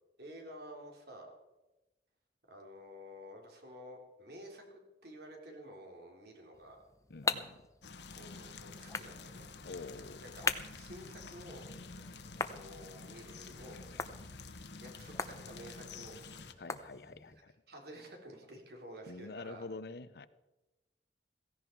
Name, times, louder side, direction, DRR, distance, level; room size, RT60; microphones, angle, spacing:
voice 1, 0.2-1.3 2.5-6.8 8.1-9.5 10.2-10.4 10.7-11.7 12.5-13.8 14.5-16.6 17.7-19.6, equal, 65° right, 1 dB, 3.6 m, -51 dB
sound 1, 6.5-17.4, left 4 dB, 20° left, 0.7 m, -42 dB
voice 2, 7.1-7.6 9.6-10.2 16.6-17.5 19.1-20.3, left 3 dB, 60° left, 14 dB, 0.7 m, -46 dB
sound 2, 7.8-16.5, left 4 dB, 80° left, 1.2 m, -49 dB
16.5 x 16.0 x 4.6 m, 1.1 s
head